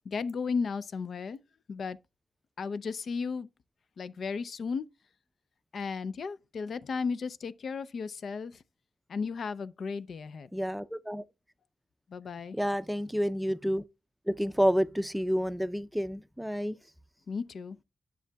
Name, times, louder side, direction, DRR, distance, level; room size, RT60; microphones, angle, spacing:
voice 1, 0.1-1.4 1.7-2.0 2.6-3.5 4.0-4.8 5.7-8.6 9.1-10.5 12.1-12.6 17.3-17.8, left 5 dB, 70° left, 0.5 m, -34 dB
voice 2, 10.5-11.2 12.5-13.8 14.3-16.8, equal, 5° right, 0.5 m, -29 dB
10.0 x 6.9 x 2.3 m
wide cardioid pair, 105°, 0 cm